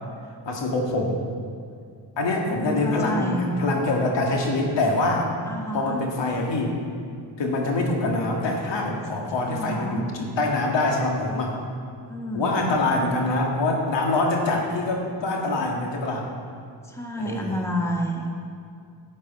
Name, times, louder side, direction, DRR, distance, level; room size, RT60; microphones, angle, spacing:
voice 1, 0.5-1.2 2.2-5.3 5.7-6.8 7.4-11.6 12.3-16.3 17.2-17.6, left 2 dB, 70° left, 0 dB, 1.8 m, -24 dB
voice 2, 2.5-3.5 5.4-6.0 9.4-10.1 12.1-12.7 16.8-18.3, equal, 5° left, 1 dB, 1.5 m, -29 dB
9.7 x 8.5 x 5.2 m, 2.3 s
supercardioid pair, 65°, 45 cm